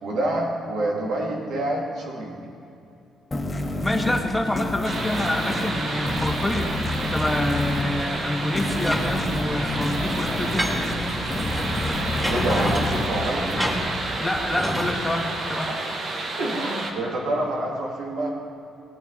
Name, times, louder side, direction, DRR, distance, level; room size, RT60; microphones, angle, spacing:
voice 1, 0.0-2.4 12.3-13.4 15.7-15.8 16.4-18.3, right 1 dB, 80° right, -2 dB, 3.1 m, -27 dB
sound 1, 3.3-14.5, left 2 dB, 25° left, 1.9 m, -30 dB
voice 2, 3.8-6.7 7.1-10.7 14.2-15.7, left 1 dB, 10° left, 0 dB, 2.0 m, -26 dB
sound 2, 4.8-16.9, right 2 dB, 60° right, 1.8 m, -30 dB
sound 3, 8.7-14.9, equal, 10° right, 2.7 m, -30 dB
19.0 x 9.3 x 4.2 m, 2.6 s
cardioid pair, 90°, 0 cm